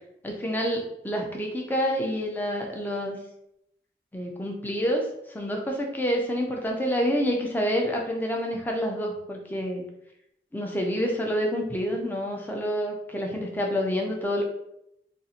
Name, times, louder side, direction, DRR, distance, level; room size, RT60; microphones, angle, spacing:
voice 1, 0.2-3.2 4.1-5.1 5.3-9.9 10.5-14.4, equal, 10° left, 0 dB, 0.4 m, -28 dB
2.6 x 2.4 x 4.1 m, 0.79 s
head